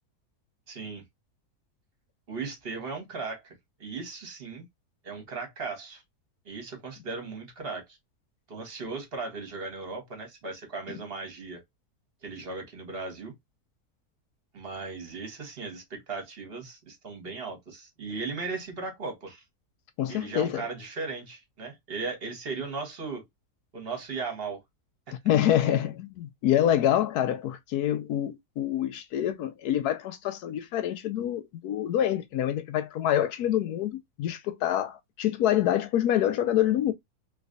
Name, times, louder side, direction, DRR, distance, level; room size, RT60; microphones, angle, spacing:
voice 1, 0.7-1.0 2.3-3.5 3.8-4.6 5.0-6.0 6.4-8.0 8.5-11.6 12.2-13.3 14.5-19.4 20.1-23.2 23.7-24.6 25.1-25.2, right 4 dB, 40° right, 1.3 m, -37 dB
voice 2, 20.0-20.6 25.2-36.9, left 11 dB, 80° left, 1.2 m, -26 dB
3.2 x 3.1 x 2.5 m
omnidirectional pair, 1.7 m